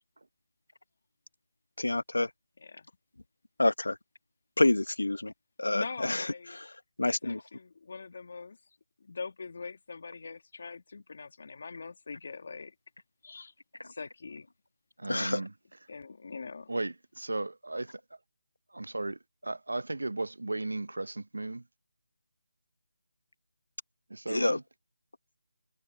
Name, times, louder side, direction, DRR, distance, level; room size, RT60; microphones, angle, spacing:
voice 1, 1.8-2.3 3.6-4.0 4.6-5.3 5.6-6.3 6.5-6.7 7.0-7.4 15.1-15.4 24.3-24.6, left 2 dB, 85° left, 1.6 m, -27 dB
voice 2, 5.7-6.6 7.0-8.6 9.0-12.7 13.2-13.5 13.8-14.5 15.9-16.7, left 4 dB, 55° left, 2.7 m, -43 dB
voice 3, 15.0-15.5 16.7-18.0 18.7-21.6 24.1-24.6, right 2 dB, 85° right, 1.0 m, -35 dB
figure-of-eight pair, 160°, 0 cm